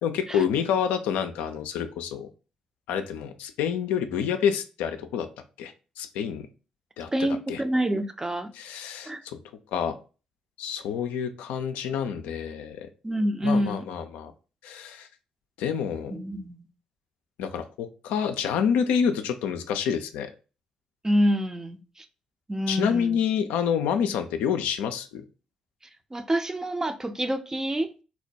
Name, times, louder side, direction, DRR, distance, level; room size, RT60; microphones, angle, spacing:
voice 1, 0.0-2.3 2.9-5.3 5.6-6.5 7.0-7.1 7.5-7.6 8.5-9.4 9.7-9.9 10.6-12.9 13.4-14.3 14.6-15.1 15.6-16.1 17.4-20.3 22.7-25.2, left 7 dB, 75° left, 0.3 m, -28 dB
voice 2, 7.1-8.5 9.1-9.2 13.0-13.8 16.1-16.6 21.0-22.0 22.5-23.2 26.1-27.9, equal, 20° right, 0.5 m, -27 dB
4.2 x 2.1 x 2.6 m
hypercardioid pair, 45°, 3 cm